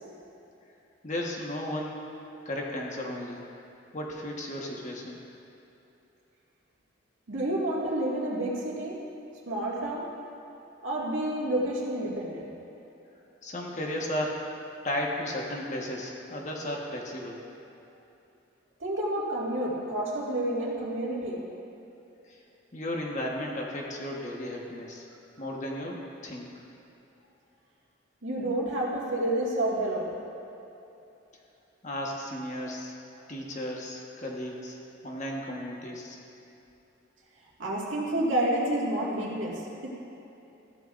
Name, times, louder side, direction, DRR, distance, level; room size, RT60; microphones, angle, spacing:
voice 1, 1.0-2.1 2.4-3.4 3.9-5.2 13.4-14.4 14.8-17.4 22.7-25.1 25.4-26.5 31.8-32.9 33.3-34.8 35.0-36.2, left 1 dB, 40° left, -1 dB, 1.3 m, -34 dB
voice 2, 7.3-9.0 9.5-10.1 10.8-12.5 18.8-21.4 28.2-30.1 37.6-39.9, right 1 dB, 80° right, -4 dB, 2.1 m, -29 dB
15.0 x 12.0 x 2.6 m, 2.9 s
head